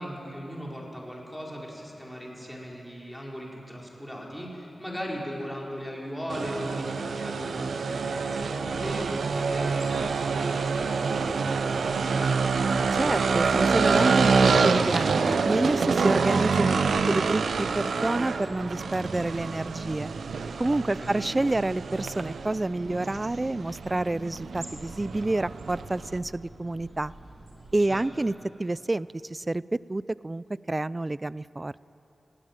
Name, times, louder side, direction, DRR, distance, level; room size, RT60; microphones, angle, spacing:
voice 1, 0.0-12.7 21.0-21.3 27.8-28.3, equal, 5° left, -3 dB, 5.1 m, -38 dB
sound 1, 6.3-26.2, right 5 dB, 85° right, 0.7 m, -27 dB
sound 2, 8.4-27.9, right 2 dB, 55° right, 3.8 m, -48 dB
voice 2, 12.9-16.8 17.1-20.1 20.6-27.1 27.7-28.3 28.6-31.9, right 2 dB, 30° right, 19 dB, 0.4 m, -28 dB
20.0 x 16.5 x 9.2 m, 2.8 s
cardioid pair, 55°, 0 cm